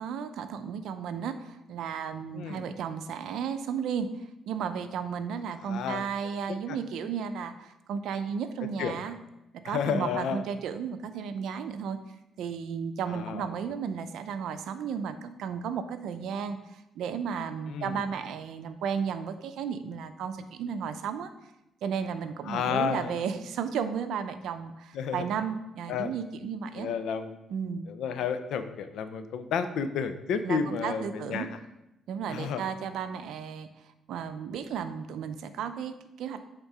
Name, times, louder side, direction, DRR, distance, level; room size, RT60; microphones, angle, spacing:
voice 1, 0.0-4.1 4.5-9.2 9.6-12.0 12.4-21.3 21.8-26.9 27.5-27.9 30.4-31.5 32.1-33.7 34.1-36.5, right 7 dB, 80° right, 10 dB, 0.5 m, -34 dB
voice 2, 2.3-2.7 5.6-6.0 6.5-6.8 8.8-9.0 9.6-10.4 13.1-13.5 17.7-18.0 22.5-23.2 24.9-25.3 25.9-26.1 26.8-27.4 27.9-31.5 32.3-32.6, left 7 dB, 80° left, 10 dB, 0.6 m, -31 dB
8.1 x 3.7 x 4.9 m, 0.90 s
cardioid pair, 90°, 0 cm